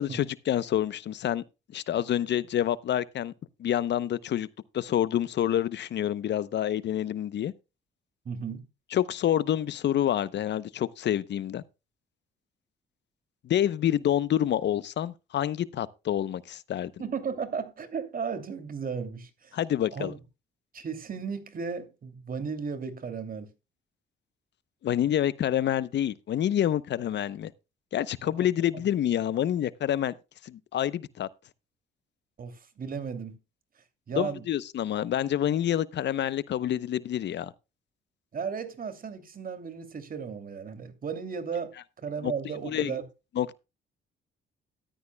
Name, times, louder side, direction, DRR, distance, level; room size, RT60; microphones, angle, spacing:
voice 1, 0.0-1.4 1.7-3.3 3.6-4.5 4.7-7.5 8.9-11.6 13.4-16.9 19.5-20.1 24.8-27.5 27.9-30.1 30.4-31.3 34.1-37.5 42.2-42.3 42.6-42.9 43.4-43.5, left 11 dB, 60° left, 0.8 m, -27 dB
voice 2, 8.2-8.7 17.0-19.6 19.9-20.2 20.7-23.5 28.4-28.5 32.4-33.4 34.1-34.5 38.3-43.0, right 6 dB, 45° right, 2.8 m, -35 dB
14.0 x 12.0 x 2.3 m
cardioid pair, 90°, 20 cm